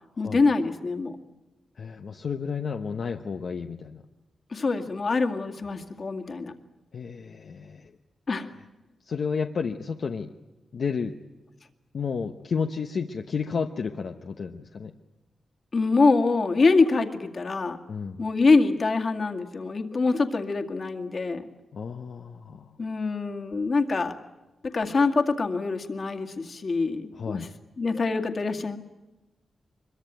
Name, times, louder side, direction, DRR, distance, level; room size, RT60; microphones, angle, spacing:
voice 1, 0.2-1.2 4.5-6.5 8.3-8.5 15.7-17.8 18.2-21.4 22.8-24.1 24.6-27.5 27.8-28.8, left 3 dB, 40° left, 5 dB, 2.1 m, -24 dB
voice 2, 1.8-4.0 6.9-7.9 9.0-10.3 10.7-11.1 11.9-14.9 17.9-18.2 21.7-22.8 27.1-27.5, left 5 dB, 60° left, 4 dB, 1.0 m, -31 dB
24.0 x 22.5 x 9.1 m, 1.1 s
wide cardioid pair, 120°, 0 cm